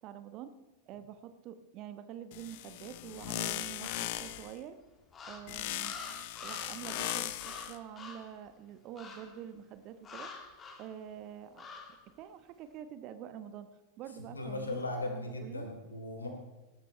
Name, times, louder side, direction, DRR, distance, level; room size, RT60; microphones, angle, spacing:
voice 1, 0.0-0.5 0.9-4.8 5.3-6.0 6.4-10.3 10.8-11.7 12.1-13.7 14.0-14.8 15.1-15.7, right 10 dB, 40° right, 10 dB, 1.1 m, -46 dB
sound 1, 2.3-4.6 5.5-7.8, left 14 dB, 50° left, 0.8 m, -38 dB
sound 2, 3.8-4.4 5.1-8.4 9.0-9.4 10.0-10.9 11.6-12.0, left 4 dB, 25° left, 2.3 m, -47 dB
voice 2, 14.3-16.3, left 2 dB, 75° left, 3 dB, 3.3 m, -37 dB
19.0 x 12.5 x 3.3 m, 1.1 s
figure-of-eight pair, 90°, 0 cm